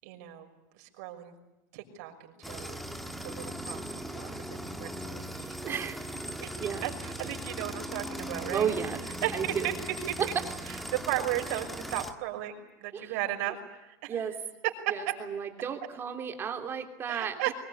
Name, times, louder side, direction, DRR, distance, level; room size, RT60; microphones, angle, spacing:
voice 1, 0.0-0.5 0.8-1.3 1.7-2.1 2.4-2.8 3.2-5.9 6.4-6.5 6.8-8.7 9.2-9.7 10.9-14.2 17.1-17.5, right 14 dB, 70° right, 3 dB, 6.1 m, -35 dB
sound 1, 2.4-12.1, equal, ahead, 1.8 m, -39 dB
voice 2, 5.6-6.1 6.6-6.9 8.5-9.0 9.3-9.7 10.2-10.3 12.9-13.2 14.1-14.4 14.9-17.4, right 7 dB, 25° right, 5 dB, 3.1 m, -33 dB
24.5 x 21.5 x 10.0 m, 0.95 s
supercardioid pair, 150°, 9 cm